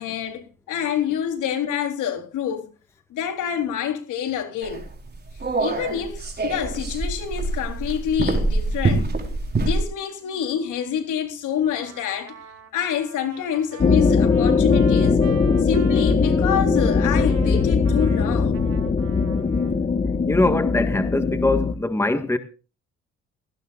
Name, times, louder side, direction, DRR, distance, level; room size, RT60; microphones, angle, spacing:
voice 1, 0.0-2.7 3.1-4.8 5.6-9.1 9.6-12.3 12.7-15.2 15.6-18.6, left 8 dB, 85° left, 3.8 m, -27 dB
sound 1, 4.6-9.8, right 2 dB, 35° right, 4.4 m, -25 dB
Trumpet, 11.7-19.8, right 7 dB, 65° right, 4.1 m, -45 dB
sound 2, 13.8-21.7, left 4 dB, 30° left, 1.3 m, -20 dB
voice 2, 20.3-22.4, left 2 dB, 10° left, 1.7 m, -22 dB
18.5 x 16.5 x 2.5 m
cardioid pair, 90°, 30 cm